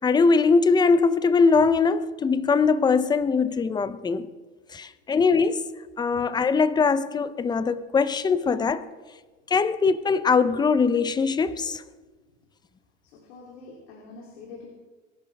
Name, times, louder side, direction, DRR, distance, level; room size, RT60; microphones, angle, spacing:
voice 1, 0.0-4.3 4.7-5.7 6.0-8.9 9.5-11.8, left 4 dB, 10° left, 0.6 m, -21 dB
voice 2, 13.0-14.7, left 4 dB, 75° left, 3.2 m, -45 dB
22.0 x 11.5 x 3.4 m
supercardioid pair, 120°, 35 cm